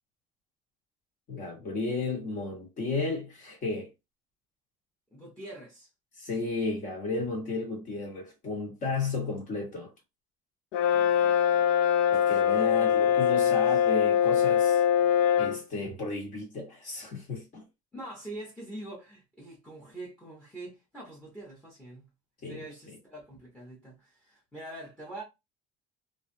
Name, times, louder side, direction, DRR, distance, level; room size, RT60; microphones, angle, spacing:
voice 1, 1.3-3.9 6.2-9.9 12.1-14.8 15.4-17.6 22.4-22.6, left 3 dB, 40° left, 1.3 m, -33 dB
voice 2, 5.1-5.9 10.9-11.7 12.5-13.8 17.9-22.1 22.5-25.2, right 1 dB, 5° left, 0.9 m, -45 dB
Brass instrument, 10.7-15.6, left 9 dB, 70° left, 0.4 m, -23 dB
3.2 x 2.5 x 2.6 m
cardioid pair, 165°, 20 cm